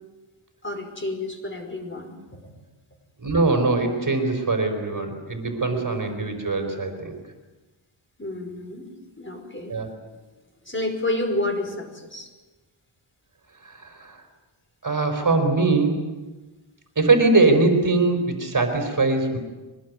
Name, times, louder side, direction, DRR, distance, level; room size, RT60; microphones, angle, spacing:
voice 1, 0.6-2.4 5.7-6.1 8.2-8.9 9.2-9.8 10.7-12.3, left 2 dB, 25° left, 4 dB, 5.3 m, -30 dB
voice 2, 3.2-7.2 9.7-9.9 13.6-14.2 14.8-16.0 17.0-19.4, right 3 dB, 40° right, 5 dB, 4.6 m, -22 dB
23.5 x 20.5 x 9.6 m, 1.2 s
wide cardioid pair, 105°, 48 cm